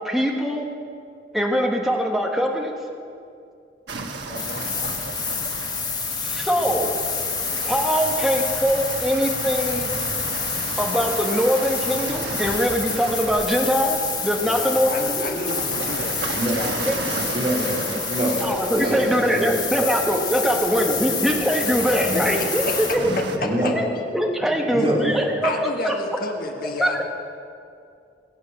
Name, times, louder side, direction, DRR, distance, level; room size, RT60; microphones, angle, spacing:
voice 1, 0.0-0.6 1.3-2.7 4.8-4.9 6.1-6.9 7.6-9.9 10.8-15.2 16.9-17.0 18.4-22.6 22.9-23.0 23.3-23.5 23.7-23.8 24.1-25.9 26.8-27.0, equal, ahead, 1 dB, 1.2 m, -22 dB
sound 1, 3.9-23.4, right 3 dB, 75° right, 1.2 m, -34 dB
voice 2, 4.3-4.7 14.4-16.3 16.6-16.7 17.1-17.7 22.7-22.8 23.1-23.7 25.4-27.0, left 2 dB, 55° left, 2 dB, 1.5 m, -31 dB
sound 2, 4.3-22.9, left 6 dB, 20° left, 1.1 m, -29 dB
voice 3, 17.3-18.4 18.7-19.6 20.9-21.1 22.0-22.2 23.0-23.1 23.4-23.7 24.7-25.2, right 1 dB, 30° right, -5 dB, 3.2 m, -25 dB
20.5 x 8.3 x 6.5 m, 2.4 s
head